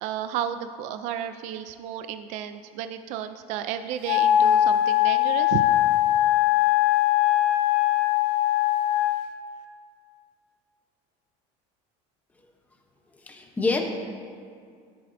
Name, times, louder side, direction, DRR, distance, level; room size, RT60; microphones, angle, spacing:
voice 1, 0.0-5.6, right 10 dB, 50° right, 10 dB, 0.4 m, -32 dB
Wind instrument woodwind instrument, 4.0-9.3, left 13 dB, 80° left, 0.7 m, -21 dB
voice 2, 13.2-13.8, left 3 dB, 10° left, 2 dB, 0.8 m, -26 dB
14.5 x 7.6 x 2.6 m, 2.2 s
cardioid pair, 165°, 16 cm